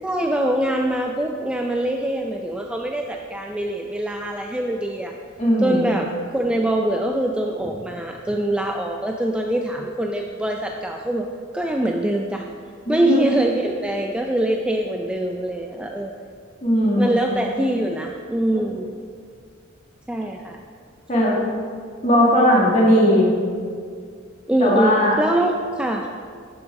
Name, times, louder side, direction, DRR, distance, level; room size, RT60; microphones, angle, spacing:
voice 1, 0.0-5.2 5.6-12.5 12.9-16.1 17.0-18.9 20.1-20.6 24.5-26.1, right 1 dB, 5° right, 2 dB, 0.4 m, -23 dB
voice 2, 5.4-5.9 12.9-13.2 16.6-17.1 18.5-18.7 21.1-21.4 22.0-23.3 24.6-25.1, equal, 35° left, -5 dB, 2.3 m, -18 dB
11.5 x 8.0 x 3.7 m, 2.1 s
head